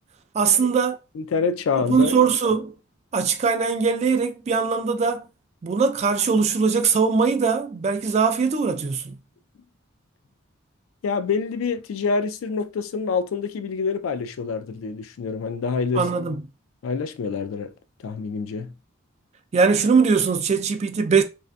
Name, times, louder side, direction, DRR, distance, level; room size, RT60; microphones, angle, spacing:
voice 1, 0.3-1.0 1.8-2.7 3.1-5.2 5.6-9.2 16.0-16.4 19.5-21.2, right 5 dB, 35° right, 0.3 m, -21 dB
voice 2, 1.1-2.3 11.0-16.1 16.8-17.7 18.0-18.7, left 5 dB, 75° left, 0.3 m, -26 dB
2.5 x 2.2 x 2.4 m
head